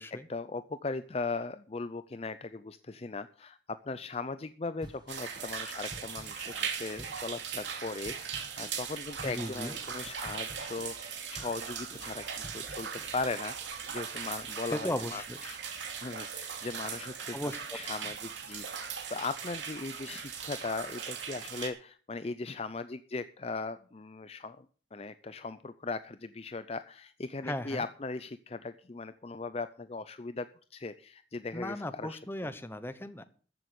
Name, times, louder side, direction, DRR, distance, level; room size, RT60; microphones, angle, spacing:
voice 1, 0.0-13.5 13.9-15.6 16.0-17.4 17.7-24.7 24.9-32.5, left 3 dB, 35° left, 12 dB, 0.5 m, -38 dB
sound 1, 4.8-13.5, right 1 dB, 25° right, 1.6 m, -53 dB
sound 2, 5.1-21.7, right 7 dB, 90° right, 2.8 m, -39 dB
voice 2, 9.2-9.7 14.6-15.4 17.3-17.8 27.4-27.8 31.5-33.2, left 1 dB, 10° left, 11 dB, 0.9 m, -36 dB
14.0 x 7.8 x 6.8 m, 0.41 s
head